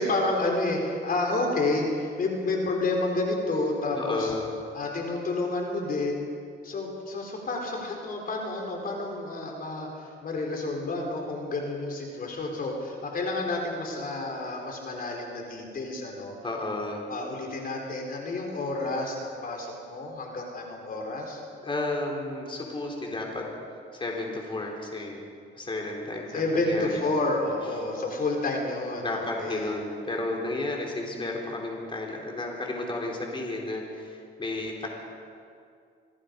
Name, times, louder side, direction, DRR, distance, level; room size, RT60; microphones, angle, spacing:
voice 1, 0.0-4.3 4.7-6.3 6.6-16.3 17.1-21.4 26.3-29.7, left 2 dB, 45° left, 0 dB, 4.3 m, -30 dB
voice 2, 3.9-4.5 16.4-17.0 21.6-23.5 23.9-25.2 25.6-27.0 29.0-34.9, left 2 dB, 25° left, 0 dB, 4.1 m, -32 dB
26.5 x 18.5 x 5.4 m, 2.3 s
cardioid pair, 90°, 20 cm